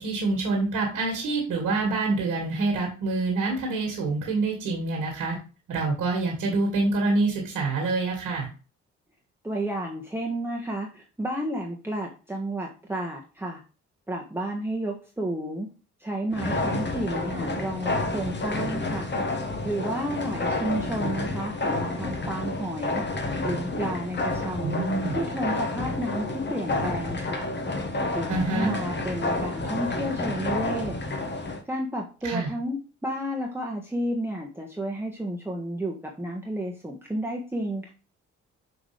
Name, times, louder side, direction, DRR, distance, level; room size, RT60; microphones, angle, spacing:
voice 1, 0.0-5.4 5.7-8.5 24.6-25.2 28.3-28.7 32.2-32.5, right 3 dB, 65° right, -1 dB, 2.0 m, -26 dB
voice 2, 9.4-13.6 14.1-15.7 16.0-19.1 19.6-23.1 23.4-24.8 25.1-27.5 28.1-31.0 31.7-37.9, right 1 dB, 5° right, -1 dB, 1.4 m, -31 dB
sound 1, 16.3-31.6, left 2 dB, 30° left, 1.5 m, -30 dB
6.2 x 5.0 x 3.3 m, 0.34 s
figure-of-eight pair, 40°, 36 cm